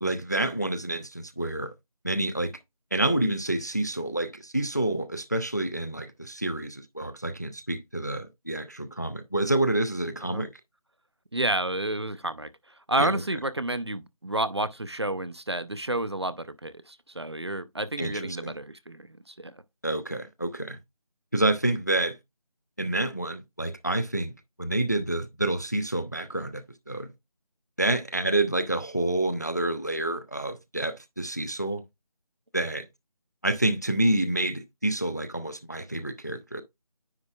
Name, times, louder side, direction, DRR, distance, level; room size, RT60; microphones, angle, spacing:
voice 1, 0.0-1.7 2.0-2.5 2.9-10.5 13.0-13.2 18.0-18.6 19.8-20.8 21.3-22.2 22.8-24.3 24.6-27.1 27.8-31.8 32.5-32.9 33.4-36.6, right 1 dB, 30° left, 0.4 m, -28 dB
voice 2, 11.3-12.5 12.9-19.5, right 1 dB, 45° right, 0.4 m, -30 dB
9.6 x 4.3 x 2.3 m
figure-of-eight pair, 170°, 20 cm